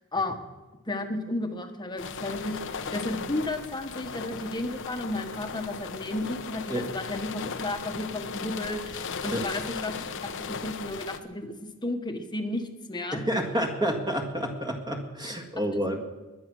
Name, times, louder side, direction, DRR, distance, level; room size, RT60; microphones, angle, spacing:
voice 1, 0.9-9.9 10.2-13.2 15.2-15.4 15.7-16.0, left 2 dB, 20° left, 6 dB, 1.3 m, -33 dB
sound 1, 2.0-11.2, left 5 dB, 60° left, 0.9 m, -37 dB
voice 2, 13.1-16.0, equal, 20° right, 3 dB, 1.8 m, -29 dB
21.5 x 9.6 x 6.3 m, 1.2 s
head